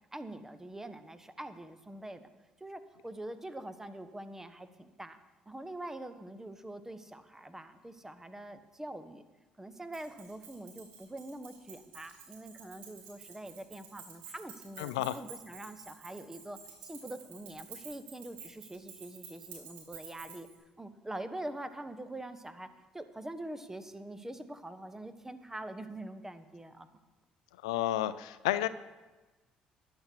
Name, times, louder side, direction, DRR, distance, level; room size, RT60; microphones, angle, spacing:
voice 1, 0.1-2.3 2.6-5.2 5.5-9.2 9.6-20.5 20.8-22.7 22.9-26.9, right 1 dB, 15° right, 10 dB, 1.4 m, -44 dB
Keys jangling, 9.9-20.5, right 7 dB, 80° right, 3.8 m, -51 dB
voice 2, 14.8-15.2 27.6-28.7, left 14 dB, 90° left, 15 dB, 0.4 m, -31 dB
13.5 x 10.5 x 4.7 m, 1.2 s
hypercardioid pair, 55°, 3 cm